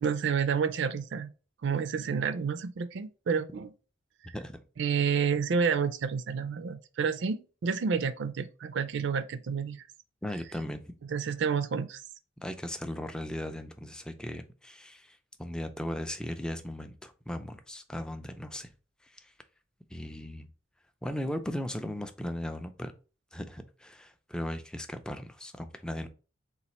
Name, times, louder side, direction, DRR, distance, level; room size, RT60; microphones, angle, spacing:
voice 1, 0.0-1.3 1.6-3.7 4.8-9.8 11.1-12.0, right 6 dB, 65° right, 0.4 m, -29 dB
voice 2, 10.2-10.8 12.4-18.7 19.0-19.3 19.9-20.5 21.0-22.9 23.3-26.1, left 1 dB, 5° left, 0.3 m, -37 dB
4.0 x 2.5 x 4.1 m
head